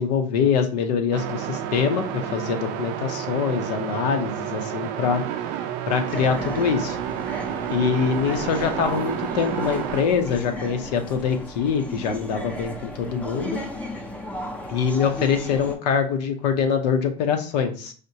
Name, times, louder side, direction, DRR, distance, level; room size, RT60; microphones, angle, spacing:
voice 1, 0.0-5.2 5.9-7.0 7.7-13.6 14.7-17.9, left 6 dB, 75° left, 6 dB, 0.7 m, -24 dB
sound 1, 1.1-10.0, right 10 dB, 45° right, 0.4 m, -30 dB
sound 2, 6.1-15.8, equal, 5° left, 0.5 m, -35 dB
5.0 x 2.1 x 2.7 m, 0.41 s
supercardioid pair, 135°, 21 cm